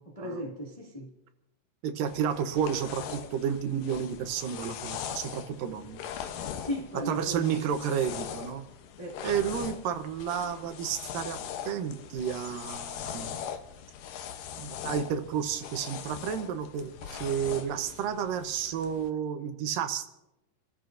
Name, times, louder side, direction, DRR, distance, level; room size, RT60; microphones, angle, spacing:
voice 1, 0.1-1.1 6.5-7.9 9.0-9.3, equal, 20° left, 0.9 m, -37 dB
voice 2, 1.8-6.0 7.1-8.6 9.2-11.4 11.6-13.4 14.6-20.1, right 8 dB, 85° right, 2.6 m, -31 dB
sound 1, 2.1-19.1, left 9 dB, 80° left, 2.5 m, -41 dB
30.0 x 13.5 x 2.6 m
omnidirectional pair, 3.8 m